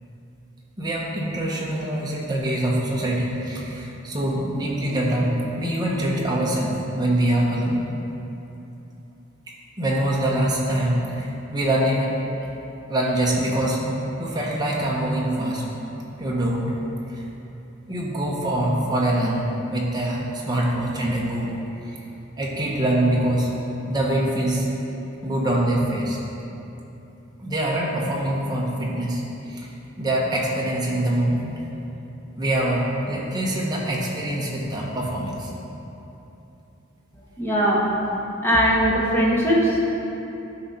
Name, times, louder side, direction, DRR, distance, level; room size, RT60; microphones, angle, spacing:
voice 1, 0.8-7.8 9.8-12.1 12.9-13.9 14.2-15.6 16.2-16.8 17.1-17.2 17.9-21.5 21.8-22.0 22.4-23.5 23.9-24.7 25.2-26.2 27.4-29.7 30.0-31.5 32.4-35.5, right 1 dB, 20° right, -4 dB, 1.2 m, -24 dB
voice 2, 37.4-37.8 38.4-40.0, equal, 10° left, -6 dB, 1.4 m, -20 dB
12.0 x 4.9 x 4.3 m, 3.0 s
head